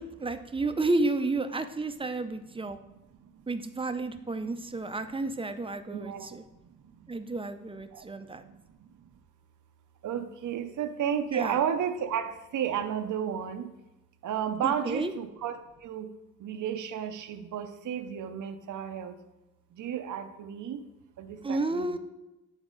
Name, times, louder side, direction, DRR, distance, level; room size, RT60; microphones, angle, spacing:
voice 1, 0.0-2.8 3.5-6.4 7.1-8.4 11.3-11.6 14.6-15.1 21.4-22.0, right 2 dB, 15° right, 9 dB, 0.5 m, -31 dB
voice 2, 5.9-6.3 7.9-8.0 10.0-13.7 14.2-15.6 15.8-16.1 16.4-19.2 19.8-20.8 21.2-22.0, right 9 dB, 65° right, 7 dB, 0.6 m, -32 dB
8.1 x 4.3 x 3.8 m, 0.97 s
cardioid pair, 90°, 33 cm